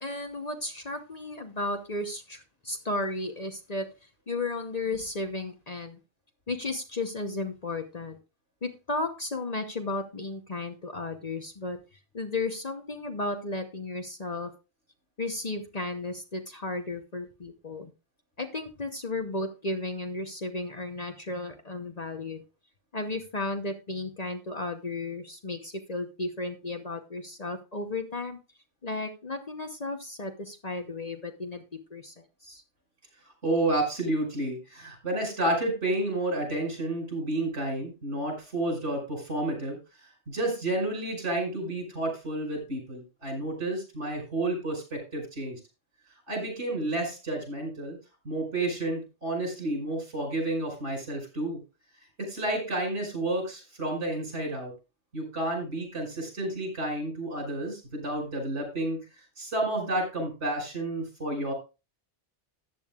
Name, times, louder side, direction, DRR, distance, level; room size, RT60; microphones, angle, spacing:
voice 1, 0.0-3.9 4.3-6.0 6.5-8.2 8.6-11.8 12.1-14.5 15.2-17.9 18.4-22.4 22.9-28.4 28.8-31.6 31.9-32.6, left 2 dB, 35° left, 6 dB, 1.0 m, -34 dB
voice 2, 33.4-39.8 40.3-45.6 46.3-48.0 48.2-51.6 52.2-54.7 55.1-59.0 59.4-61.5, right 1 dB, 75° right, 1 dB, 5.7 m, -30 dB
14.0 x 9.2 x 2.4 m, 0.29 s
omnidirectional pair, 1.2 m